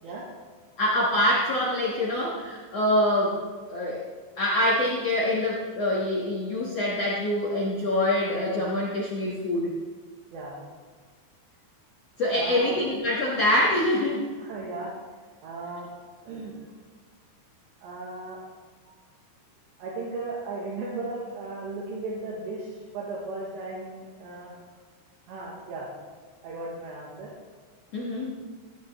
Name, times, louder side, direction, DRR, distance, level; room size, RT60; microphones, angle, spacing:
voice 1, 0.8-3.4 3.7-4.0 4.4-9.8 12.2-14.3 27.9-28.3, left 1 dB, 65° left, -5 dB, 1.6 m, -25 dB
voice 2, 12.3-12.8 14.4-14.9 15.4-15.9 16.2-16.5 17.8-18.4 19.8-24.5 25.3-25.9 26.4-27.3, right 3 dB, 75° right, -5 dB, 3.7 m, -36 dB
15.5 x 9.3 x 3.5 m, 1.5 s
omnidirectional pair, 5.2 m